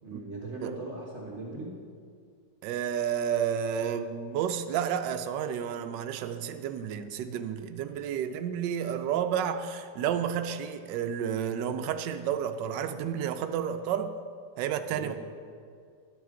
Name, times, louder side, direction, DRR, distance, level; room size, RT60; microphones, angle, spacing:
voice 1, 0.0-1.7 14.9-15.1, right 2 dB, 40° right, -2 dB, 1.3 m, -39 dB
voice 2, 2.6-14.1 14.6-15.1, right 8 dB, 75° right, 8 dB, 1.2 m, -31 dB
11.0 x 8.8 x 3.7 m, 2.1 s
omnidirectional pair, 2.1 m